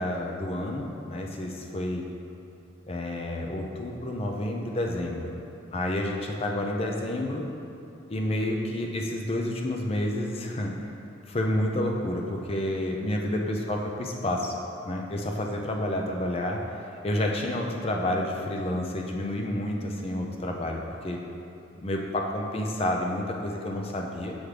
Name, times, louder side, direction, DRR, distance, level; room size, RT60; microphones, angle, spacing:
voice 1, 0.0-2.0 2.9-5.3 5.7-7.4 8.1-10.7 11.3-14.5 14.8-16.6 17.0-21.2 21.8-24.4, left 1 dB, 30° left, 1 dB, 0.4 m, -29 dB
7.9 x 3.6 x 3.3 m, 2.7 s
head